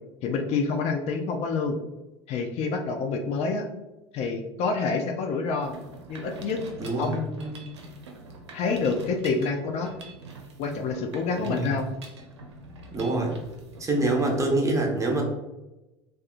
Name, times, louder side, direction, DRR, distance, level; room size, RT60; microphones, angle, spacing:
voice 1, 0.2-1.8 2.3-3.6 4.1-5.7 6.1-6.6 7.0-7.8 8.5-9.9 10.6-11.9, left 4 dB, 50° left, 4 dB, 0.4 m, -28 dB
Mechanisms, 5.6-14.4, right 2 dB, 90° right, 0.4 m, -45 dB
voice 2, 6.8-7.1 11.4-11.7 12.9-13.3 13.8-15.2, right 2 dB, 20° right, 0 dB, 0.7 m, -25 dB
2.7 x 2.2 x 2.4 m, 1.0 s
hypercardioid pair, 75°, 14 cm